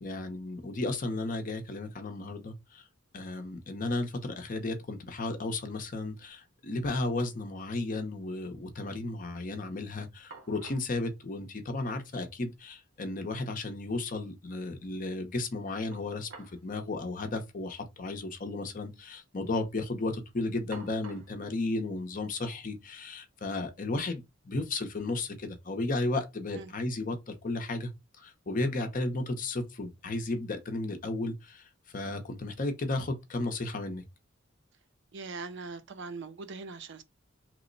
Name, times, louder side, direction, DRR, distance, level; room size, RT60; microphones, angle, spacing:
voice 1, 0.0-2.8 3.1-27.9 28.2-31.7 31.9-34.0, left 2 dB, 40° left, 0.6 m, -34 dB
sound 1, 4.6-4.8 5.1-6.0 6.3-6.4 9.8-9.9 10.3-10.9 12.1-12.2 12.5-12.6 15.9-16.7 16.9-17.1 18.0-18.2 18.5-19.0 19.4-19.8 20.7-21.4, right 3 dB, 80° right, 0.9 m, -51 dB
voice 2, 35.1-37.0, right 4 dB, 55° right, 0.5 m, -41 dB
3.0 x 2.1 x 3.8 m
head